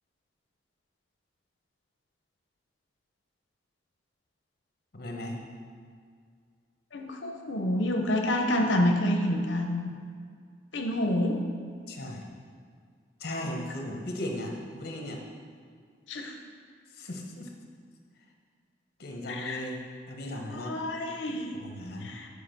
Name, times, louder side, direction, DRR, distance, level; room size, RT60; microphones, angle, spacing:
voice 1, 4.9-5.4 11.9-12.3 13.2-15.2 16.9-17.5 19.0-19.8 20.1-20.8 21.6-22.3, left 1 dB, 55° left, 1 dB, 1.1 m, -37 dB
voice 2, 6.9-9.9 10.7-11.4 16.1-16.3 19.3-19.6 20.5-21.6 22.0-22.3, left 1 dB, 80° left, 3 dB, 0.8 m, -28 dB
8.3 x 5.0 x 5.3 m, 2.1 s
head